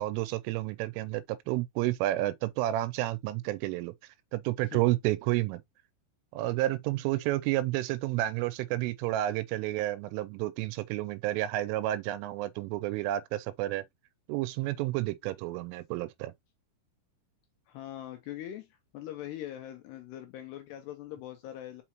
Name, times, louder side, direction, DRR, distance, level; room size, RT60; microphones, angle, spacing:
voice 1, 0.0-3.9 4.3-5.6 6.3-13.8 14.3-16.3, right 16 dB, 85° right, 3.1 m, -30 dB
voice 2, 17.7-21.8, left 12 dB, 75° left, 2.5 m, -42 dB
5.9 x 5.5 x 2.9 m
omnidirectional pair, 5.7 m